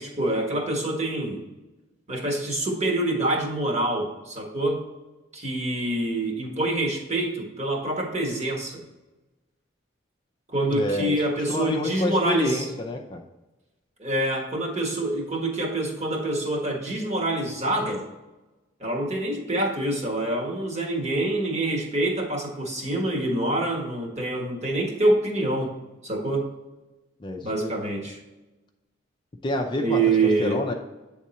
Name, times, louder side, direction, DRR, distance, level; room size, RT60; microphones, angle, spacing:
voice 1, 0.0-1.4 2.1-4.9 5.3-8.8 10.5-12.7 14.0-18.0 18.8-25.7 26.0-26.5 27.4-28.2 29.8-30.6, right 2 dB, 35° right, 0 dB, 1.5 m, -26 dB
voice 2, 10.7-13.2 27.2-27.8 29.4-30.7, left 2 dB, 25° left, 3 dB, 0.5 m, -28 dB
8.6 x 3.7 x 4.2 m, 1.1 s
head